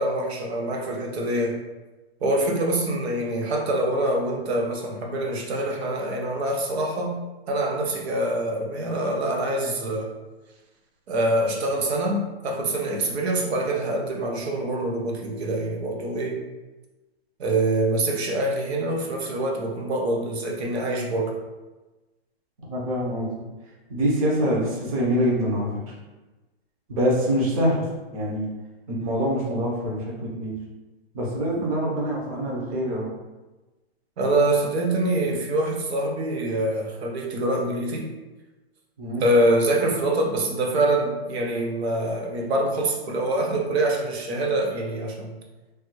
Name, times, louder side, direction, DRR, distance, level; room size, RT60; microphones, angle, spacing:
voice 1, 0.0-1.6 2.2-10.1 11.1-16.4 17.4-21.4 34.2-38.1 39.2-45.3, right 1 dB, 75° right, 0 dB, 0.7 m, -25 dB
voice 2, 22.7-23.3 23.9-25.7 26.9-27.8 28.1-28.5 28.9-30.6 31.1-33.1 39.0-39.2, equal, 35° right, -4 dB, 0.7 m, -25 dB
3.3 x 2.2 x 3.0 m, 1.1 s
hypercardioid pair, 170°, 32 cm